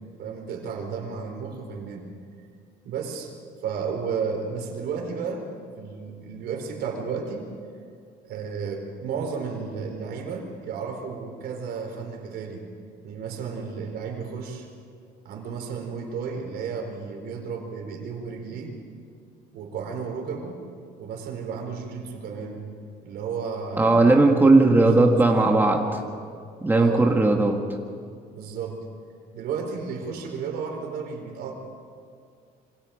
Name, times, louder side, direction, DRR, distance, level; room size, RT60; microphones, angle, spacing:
voice 1, 0.2-2.1 2.8-3.3 3.6-5.5 5.8-7.5 8.2-12.6 13.0-14.7 15.2-18.8 19.5-20.6 21.0-22.6 23.0-24.2 24.8-26.1 26.7-27.1 28.3-28.9 29.3-31.5, right 5 dB, 70° right, 2 dB, 4.4 m, -33 dB
voice 2, 23.8-25.8 26.6-27.6, right 2 dB, 10° right, 2 dB, 1.9 m, -17 dB
27.0 x 25.0 x 5.2 m, 2.3 s
cardioid pair, 110°, 17 cm